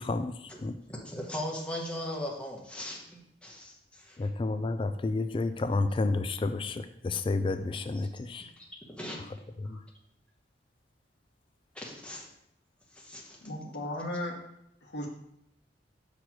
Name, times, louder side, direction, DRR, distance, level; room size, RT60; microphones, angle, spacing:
voice 1, 0.0-0.8 4.2-8.5 9.6-9.8, left 3 dB, 30° left, 10 dB, 0.3 m, -30 dB
voice 2, 0.9-4.3 7.9-8.0 8.6-9.2 9.6-9.8 11.7-12.3 12.9-13.4, left 1 dB, 5° left, -2 dB, 1.1 m, -39 dB
voice 3, 13.4-14.4 14.8-15.1, left 1 dB, 65° left, 0 dB, 1.3 m, -35 dB
6.2 x 3.3 x 5.9 m, 0.77 s
head